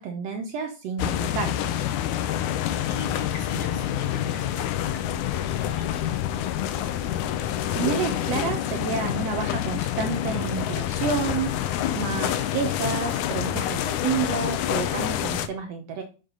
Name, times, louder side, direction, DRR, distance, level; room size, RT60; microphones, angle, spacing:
voice 1, 0.0-1.7 7.7-16.0, right 6 dB, 90° right, 5 dB, 1.4 m, -30 dB
sound 1, 1.0-15.5, left 11 dB, 75° left, 1.9 m, -27 dB
voice 2, 2.9-6.0, left 2 dB, 50° left, 0 dB, 2.4 m, -41 dB
6.4 x 5.8 x 5.5 m, 0.34 s
omnidirectional pair, 4.1 m